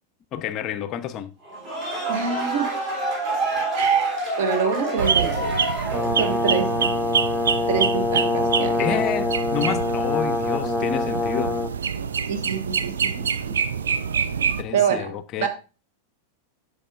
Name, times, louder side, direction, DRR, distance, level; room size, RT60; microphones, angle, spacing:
voice 1, 0.3-1.3 8.8-11.6 14.6-15.5, left 9 dB, 35° left, 0.5 m, -29 dB
sound 1, 1.5-6.5, right 3 dB, 35° right, 3.4 m, -26 dB
voice 2, 2.1-2.7 3.7-5.5 6.2-6.9 7.7-9.0 12.3-13.6 14.7-15.1 15.4-15.5, right 6 dB, 50° right, 1.4 m, -26 dB
sound 2, 5.0-14.6, right 6 dB, 70° right, 0.5 m, -26 dB
Brass instrument, 5.9-11.7, left 2 dB, ahead, 1.0 m, -25 dB
10.0 x 6.3 x 2.5 m
figure-of-eight pair, 90°, 0 cm